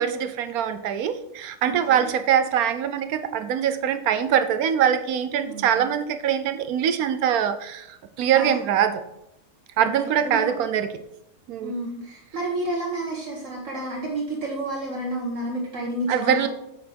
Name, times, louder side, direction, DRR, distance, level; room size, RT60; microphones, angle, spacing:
voice 1, 0.0-9.0 9.8-10.9 11.5-11.7 16.1-16.5, right 9 dB, 85° right, 10 dB, 1.1 m, -23 dB
voice 2, 1.6-2.1 5.4-5.9 8.3-8.6 9.8-10.6 11.6-16.5, right 1 dB, 60° right, -2 dB, 1.7 m, -31 dB
8.4 x 6.0 x 4.4 m, 0.82 s
omnidirectional pair, 1.5 m